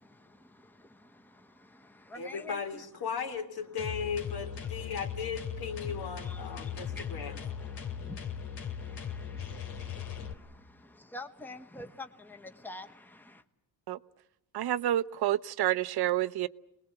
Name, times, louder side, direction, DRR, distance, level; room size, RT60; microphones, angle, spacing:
voice 1, 0.0-2.8 4.8-5.0 5.8-13.4, left 2 dB, 5° left, 1.2 m, -49 dB
voice 2, 2.1-7.4, left 6 dB, 65° left, 3.3 m, -37 dB
sound 1, 3.8-10.3, left 7 dB, 85° left, 2.8 m, -38 dB
voice 3, 14.5-16.5, right 13 dB, 70° right, 0.9 m, -29 dB
27.5 x 20.5 x 8.0 m
cardioid pair, 140°, 40 cm